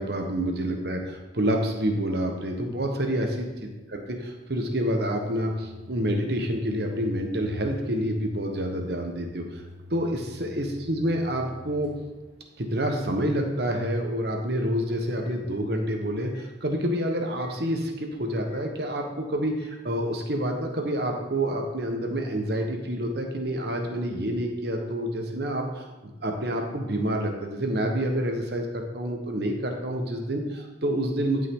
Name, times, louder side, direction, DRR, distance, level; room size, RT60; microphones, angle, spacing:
voice 1, 0.0-4.0 4.3-9.6 9.9-11.9 12.6-31.5, equal, 55° right, 3 dB, 1.2 m, -28 dB
Microwave oven, 3.3-15.9 16.3-16.5 17.4-17.6 18.5-18.6 19.6-19.7, left 1 dB, 75° right, 1.6 m, -49 dB
11.5 x 5.5 x 3.8 m, 1.1 s
head